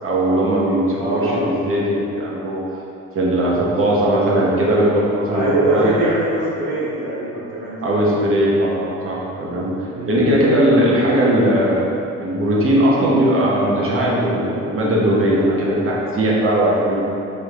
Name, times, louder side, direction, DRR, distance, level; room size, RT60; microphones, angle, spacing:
voice 1, 0.0-2.6 3.1-6.0 7.8-9.7 10.0-11.9 12.2-17.0, right 1 dB, 45° right, -5 dB, 1.0 m, -18 dB
voice 2, 1.0-1.5 5.3-8.0 9.9-10.2, right 1 dB, 80° right, -9 dB, 1.2 m, -23 dB
4.9 x 3.2 x 2.5 m, 2.8 s
cardioid pair, 90°, 30 cm